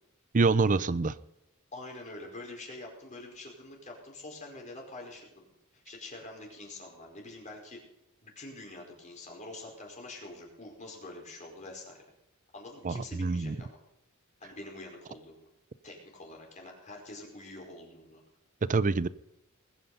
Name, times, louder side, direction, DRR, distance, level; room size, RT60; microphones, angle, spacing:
voice 1, 0.3-1.1 12.8-13.6 18.6-19.1, right 3 dB, 35° right, 17 dB, 0.5 m, -26 dB
voice 2, 1.7-5.5 5.7-7.8 8.2-12.0 12.5-13.8 14.4-15.5 15.8-18.2, left 2 dB, 35° left, 0 dB, 4.9 m, -46 dB
20.5 x 10.0 x 5.5 m, 0.85 s
head